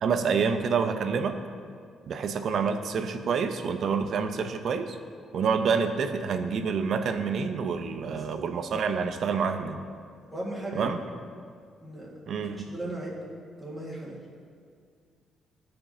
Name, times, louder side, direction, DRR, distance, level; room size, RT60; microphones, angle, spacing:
voice 1, 0.0-1.4 2.1-5.0 5.3-9.8 10.7-11.0 12.3-12.7, right 5 dB, 65° right, 8 dB, 0.6 m, -27 dB
voice 2, 10.3-10.8 11.8-12.1 12.7-13.2 13.6-14.2, right 1 dB, 5° right, -7 dB, 1.8 m, -36 dB
13.0 x 5.1 x 2.8 m, 2.1 s
cardioid pair, 90°, 0 cm